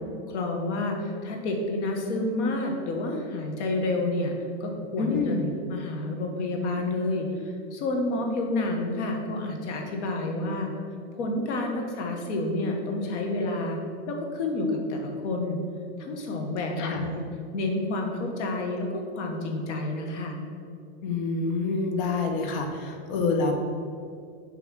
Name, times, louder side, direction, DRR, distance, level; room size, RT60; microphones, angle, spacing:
voice 1, 0.0-10.7 11.1-13.8 14.1-15.6 16.0-17.2 17.5-20.4, left 2 dB, 75° left, 2 dB, 1.5 m, -29 dB
voice 2, 5.0-5.5 16.8-17.1 21.0-23.5, left 4 dB, 50° left, 4 dB, 1.0 m, -27 dB
7.2 x 3.4 x 6.3 m, 2.3 s
supercardioid pair, 165°, 35 cm